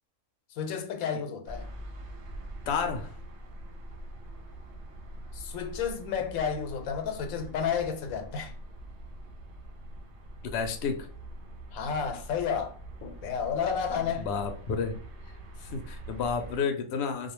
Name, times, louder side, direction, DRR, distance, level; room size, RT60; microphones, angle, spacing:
voice 1, 0.5-1.7 5.3-8.6 11.7-14.3, left 7 dB, 90° left, 1.0 m, -31 dB
sound 1, 1.5-16.6, right 1 dB, 65° right, 0.8 m, -44 dB
voice 2, 2.7-3.1 10.5-11.1 14.1-14.9 15.6-17.3, left 5 dB, 65° left, 0.7 m, -31 dB
2.3 x 2.2 x 3.0 m
omnidirectional pair, 1.4 m